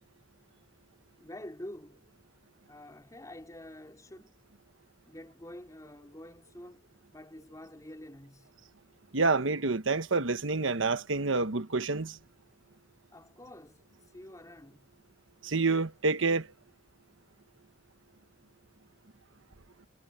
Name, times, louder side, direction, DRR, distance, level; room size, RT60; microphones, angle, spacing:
voice 1, 1.2-2.0 2.7-4.3 5.1-8.5 13.1-14.9, left 1 dB, 20° left, 4.2 m, -48 dB
voice 2, 9.1-12.2 15.4-16.5, right 3 dB, 85° right, 1.2 m, -28 dB
head